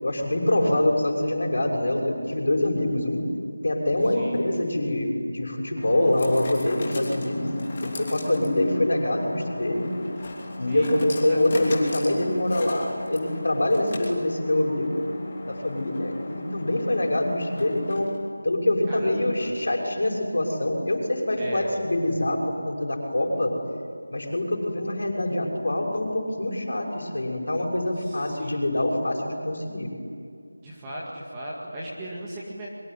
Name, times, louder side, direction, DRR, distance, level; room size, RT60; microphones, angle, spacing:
voice 1, 0.0-3.2 3.6-9.9 10.6-15.0 15.5-18.1 18.4-22.4 22.6-23.5 24.1-29.9, left 1 dB, 50° left, 1 dB, 6.4 m, -25 dB
sound 1, 4.3-18.3, left 2 dB, 20° left, 3.1 m, -38 dB
voice 2, 18.9-19.5 21.4-21.7 28.0-28.7 30.6-32.7, right 1 dB, 5° right, -6 dB, 2.1 m, -37 dB
25.5 x 23.5 x 9.6 m, 2.3 s
figure-of-eight pair, 180°, 0 cm